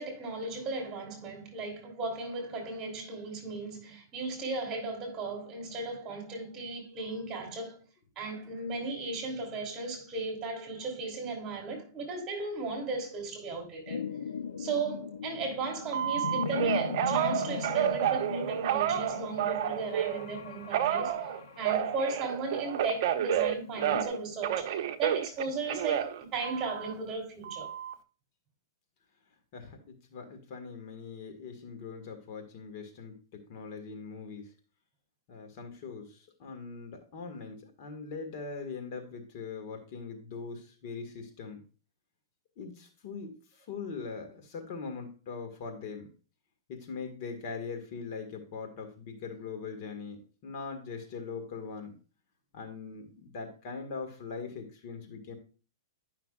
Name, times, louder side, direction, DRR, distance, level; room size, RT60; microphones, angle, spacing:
voice 1, 0.0-7.8 8.1-14.0 14.6-21.1 21.6-27.7, right 3 dB, 25° right, 3.1 m, -36 dB
sound 1, 13.9-24.1, left 6 dB, 85° left, 0.6 m, -39 dB
Telephone, 15.9-20.3 20.7-24.2 24.4-26.9 27.4-27.9, right 10 dB, 55° right, 0.7 m, -30 dB
voice 2, 29.5-34.5 35.3-41.6 42.6-46.1 46.7-52.0 52.5-55.4, left 5 dB, 50° left, 1.8 m, -41 dB
11.0 x 5.8 x 2.4 m
hypercardioid pair, 130°, 2 cm